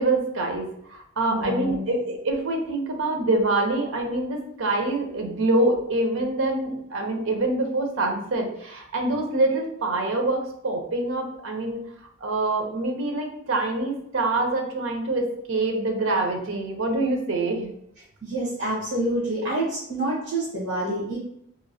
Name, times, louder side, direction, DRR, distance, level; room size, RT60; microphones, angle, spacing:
voice 1, 0.0-11.8 12.2-17.7, right 2 dB, 75° right, 3 dB, 0.7 m, -25 dB
voice 2, 1.3-1.8 18.2-21.2, right 1 dB, 60° right, -8 dB, 1.1 m, -27 dB
3.0 x 2.8 x 2.6 m, 0.72 s
head